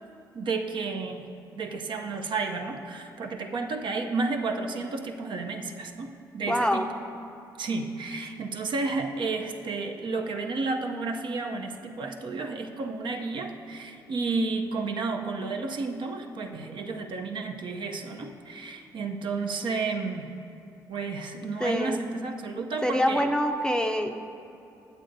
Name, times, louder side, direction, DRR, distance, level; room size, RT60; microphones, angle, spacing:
voice 1, 0.3-1.3 1.6-6.1 6.3-6.8 7.6-20.3 20.9-23.3, right 3 dB, 60° right, 3 dB, 0.5 m, -31 dB
voice 2, 6.5-6.9 21.6-22.0 22.8-24.1, equal, 10° left, 5 dB, 0.5 m, -25 dB
8.9 x 7.6 x 2.6 m, 2.8 s
hypercardioid pair, 50°, 9 cm